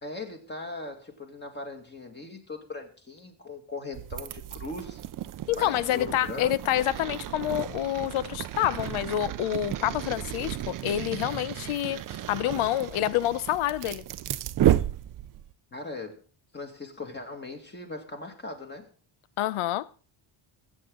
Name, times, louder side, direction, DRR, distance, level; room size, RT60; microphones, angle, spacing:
voice 1, 0.0-5.0 5.6-6.6 15.7-16.2 16.5-18.9, left 3 dB, 20° left, 2.1 m, -39 dB
sound 1, 3.9-15.5, right 12 dB, 45° right, 0.5 m, -32 dB
voice 2, 5.5-12.0 12.3-14.0 19.4-19.9, left 13 dB, 85° left, 0.9 m, -27 dB
22.5 x 8.3 x 3.8 m
cardioid pair, 170°, 48 cm